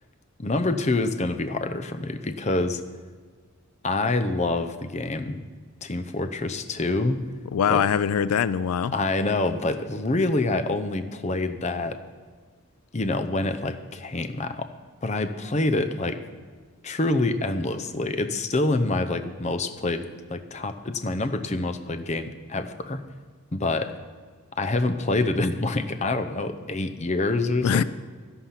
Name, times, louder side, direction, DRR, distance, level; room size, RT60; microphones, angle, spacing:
voice 1, 0.4-2.8 3.8-5.5 5.8-7.2 7.7-7.8 8.9-12.0 12.9-14.7 15.0-16.2 16.8-23.0 23.5-24.0 24.6-27.8, left 2 dB, 30° left, 9 dB, 0.6 m, -26 dB
voice 2, 7.5-8.9 27.6-27.8, left 8 dB, 80° left, 17 dB, 0.4 m, -22 dB
12.0 x 11.5 x 5.8 m, 1.5 s
head